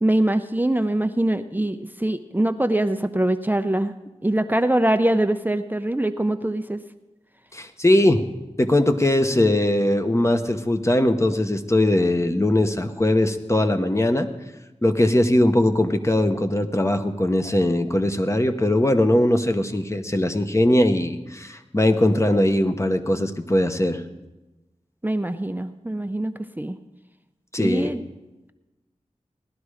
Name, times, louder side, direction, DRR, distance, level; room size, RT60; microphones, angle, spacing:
voice 1, 0.0-3.9 4.2-6.8 25.0-26.8 27.6-28.0, right 1 dB, 15° right, 9 dB, 0.6 m, -23 dB
voice 2, 7.5-8.2 8.6-14.3 14.8-24.0 27.5-27.9, left 1 dB, 25° left, 7 dB, 1.0 m, -20 dB
17.5 x 11.5 x 4.9 m, 1.1 s
wide cardioid pair, 60°, 12 cm